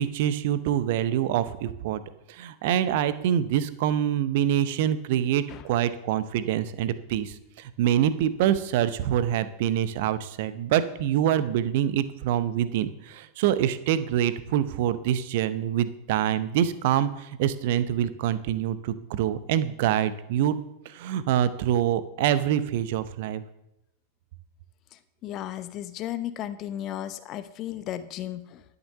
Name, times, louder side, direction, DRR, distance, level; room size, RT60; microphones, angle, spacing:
voice 1, 0.0-2.0 2.3-20.6 20.8-23.4, right 10 dB, 50° right, 14 dB, 0.7 m, -25 dB
voice 2, 24.9-28.6, left 12 dB, 35° left, 12 dB, 0.7 m, -35 dB
11.5 x 6.8 x 6.8 m, 0.87 s
figure-of-eight pair, 90°, 0 cm